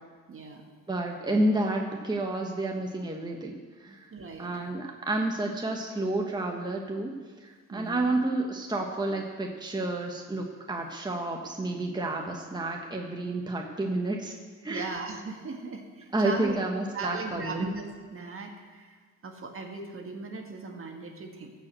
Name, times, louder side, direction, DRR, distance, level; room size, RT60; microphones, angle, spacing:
voice 1, 0.3-0.7 4.1-4.5 7.7-8.1 14.7-16.6 16.9-17.9 18.1-21.5, right 4 dB, 45° right, 3 dB, 1.8 m, -38 dB
voice 2, 0.9-4.1 4.4-14.4 14.6-14.9 16.1-17.7, right 2 dB, 15° right, 1 dB, 1.2 m, -30 dB
14.0 x 5.2 x 7.6 m, 1.5 s
cardioid pair, 90°, 30 cm